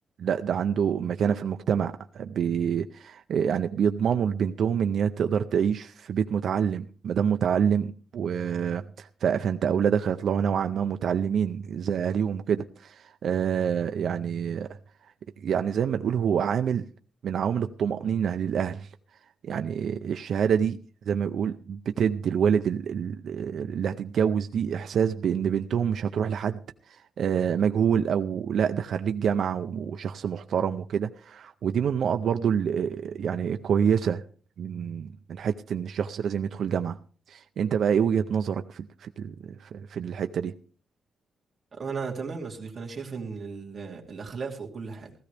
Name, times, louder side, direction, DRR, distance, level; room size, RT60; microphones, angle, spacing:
voice 1, 0.2-14.7 15.4-16.9 17.2-18.9 19.4-20.8 21.1-26.6 26.9-34.2 34.6-37.0 37.3-40.5, right 7 dB, 55° right, 0.5 m, -27 dB
voice 2, 41.7-45.1, right 5 dB, 30° right, 2.6 m, -36 dB
16.5 x 14.0 x 3.4 m
wide cardioid pair, 170°, 0 cm